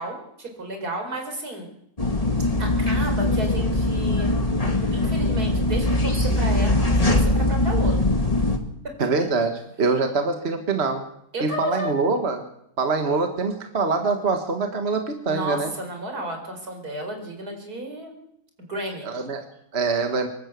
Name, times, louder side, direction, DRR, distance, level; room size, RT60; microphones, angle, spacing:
voice 1, 0.0-1.7 2.6-4.3 4.9-8.0 8.8-9.1 11.3-11.9 15.3-18.1 18.7-19.1, right 1 dB, 85° right, 3 dB, 5.2 m, -32 dB
sound 1, 2.0-8.6, left 2 dB, 25° left, 2.0 m, -21 dB
voice 2, 9.0-11.1 11.4-12.5 12.8-15.7 19.0-19.4 19.7-20.3, right 4 dB, 45° right, 5 dB, 1.8 m, -24 dB
25.0 x 13.0 x 8.2 m, 0.75 s
omnidirectional pair, 1.6 m